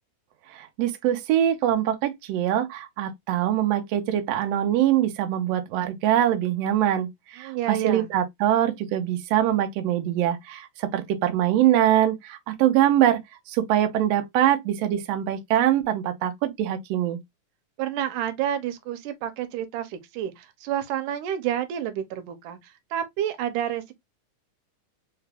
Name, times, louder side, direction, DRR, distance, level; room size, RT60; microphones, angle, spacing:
voice 1, 0.5-13.2 13.5-17.2, right 11 dB, 70° right, 1.6 m, -23 dB
voice 2, 7.4-8.1 17.8-23.9, right 10 dB, 85° right, 2.2 m, -29 dB
4.8 x 2.3 x 3.3 m
omnidirectional pair, 3.6 m